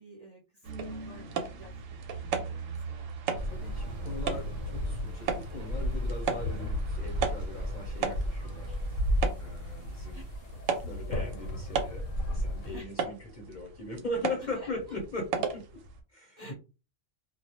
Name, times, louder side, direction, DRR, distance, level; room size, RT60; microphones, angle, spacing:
voice 1, 0.0-3.1 10.1-10.3 12.7-13.1 14.4-14.7 16.4-16.5, right 1 dB, 40° right, -3 dB, 0.6 m, -51 dB
sound 1, 0.6-16.0, right 6 dB, 90° right, 1.0 m, -37 dB
sound 2, 3.4-12.8, equal, 80° left, 1.0 m, -34 dB
voice 2, 3.4-8.8 9.4-10.2 10.8-15.3 15.5-15.6 16.1-16.5, left 2 dB, 45° left, -1 dB, 0.7 m, -39 dB
2.3 x 2.0 x 2.8 m, 0.31 s
omnidirectional pair, 1.3 m